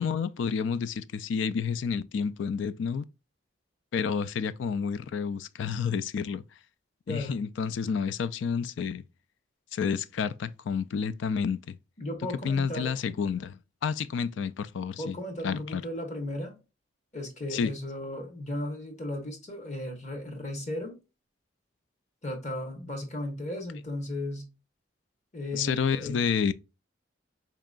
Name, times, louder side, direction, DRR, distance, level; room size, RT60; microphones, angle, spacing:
voice 1, 0.0-3.0 3.9-6.4 7.1-9.0 9.7-11.7 12.4-15.2 15.4-15.8 17.5-17.7 25.5-26.5, left 6 dB, 75° left, 0.3 m, -30 dB
voice 2, 7.1-7.4 12.0-12.9 15.0-16.6 17.1-21.0 22.2-24.5 25.3-26.3, left 1 dB, 35° left, 1.2 m, -35 dB
4.4 x 2.9 x 2.4 m
head